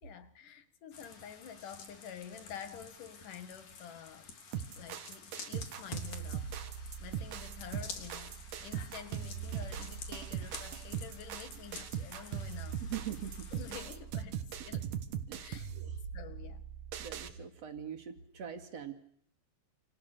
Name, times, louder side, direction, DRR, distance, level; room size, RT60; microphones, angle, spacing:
voice 1, 0.0-4.3 4.8-6.6 7.0-12.8 13.5-14.9 15.4-15.7 16.1-16.6, left 8 dB, 90° left, 3.6 m, -49 dB
sound 1, 0.9-13.8, left 5 dB, 70° left, 4.8 m, -50 dB
sound 2, 4.5-17.3, right 8 dB, 85° right, 3.2 m, -40 dB
voice 2, 12.8-13.5 15.3-15.4 15.7-15.9 17.0-18.9, right 9 dB, 55° right, 3.4 m, -42 dB
28.5 x 28.5 x 6.8 m
omnidirectional pair, 3.6 m